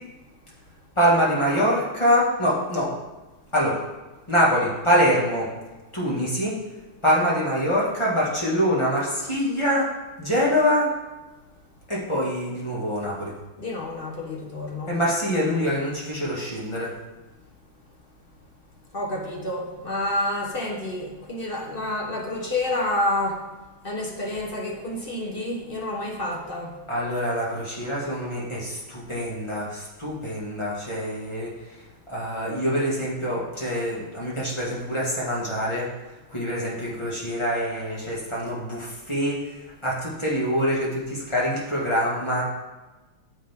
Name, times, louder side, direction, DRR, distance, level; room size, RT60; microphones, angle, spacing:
voice 1, 1.0-2.9 3.5-3.8 4.3-5.5 5.9-6.6 7.0-9.9 10.2-10.9 11.9-13.3 14.9-16.9 26.9-31.5 32.1-35.9 36.3-39.4 39.8-42.4, equal, 15° left, -6 dB, 1.9 m, -24 dB
voice 2, 13.6-15.0 18.9-23.4 23.8-26.7, left 1 dB, 35° left, -2 dB, 1.0 m, -29 dB
8.8 x 8.2 x 3.7 m, 1.2 s
omnidirectional pair, 2.4 m